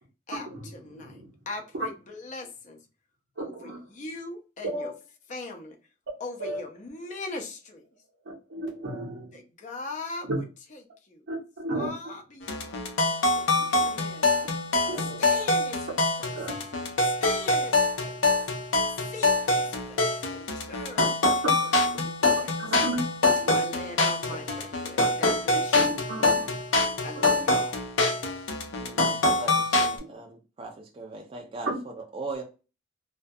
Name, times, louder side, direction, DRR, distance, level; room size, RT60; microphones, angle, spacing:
voice 1, 0.3-1.2 1.5-2.8 3.4-4.9 5.3-5.8 6.2-7.8 9.3-10.4 10.7-11.2 11.7-12.9 13.3-14.5 15.2-15.9 16.2-16.6 17.0-18.2 19.1-21.2 21.6-22.5 23.5-25.9 27.0-27.8, left 3 dB, 40° left, 0.5 m, -40 dB
voice 2, 0.9-1.3 3.4-3.8 4.6-4.9 6.4-6.6 8.3-9.3 10.3-10.4 11.3-11.9 14.9-15.2 16.3-16.5 21.7-22.0 22.6-23.0 23.3-23.7 25.5-26.4 26.7-27.4 31.7-31.8, right 2 dB, 85° right, 0.7 m, -34 dB
sound 1, 12.4-30.0, left 2 dB, 85° left, 0.5 m, -25 dB
voice 3, 28.7-31.7 32.0-32.4, right 3 dB, 30° right, 0.4 m, -39 dB
2.2 x 2.2 x 2.6 m
head